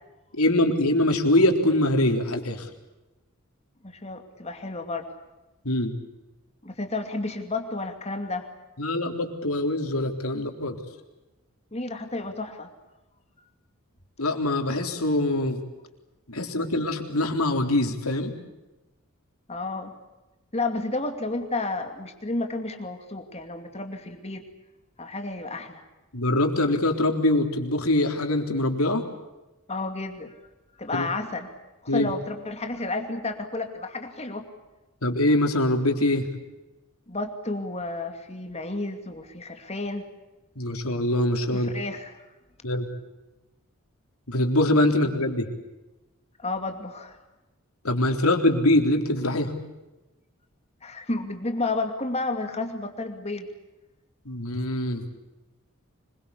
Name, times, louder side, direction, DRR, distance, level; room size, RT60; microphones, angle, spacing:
voice 1, 0.3-2.7 5.7-5.9 8.8-10.8 14.2-15.6 16.3-18.3 26.1-29.1 30.9-31.1 31.9-32.1 35.0-36.3 40.6-41.7 42.6-42.9 44.3-45.5 47.8-49.5 54.3-55.0, left 1 dB, 90° left, 4 dB, 3.8 m, -23 dB
voice 2, 3.8-5.1 6.6-8.5 11.7-12.7 19.5-19.9 20.5-24.4 25.0-25.8 29.7-30.3 30.8-31.5 31.8-34.5 37.1-40.1 41.5-42.2 46.4-47.2 50.8-53.5, left 2 dB, 30° left, 6 dB, 2.6 m, -31 dB
25.5 x 23.0 x 8.4 m, 1.0 s
head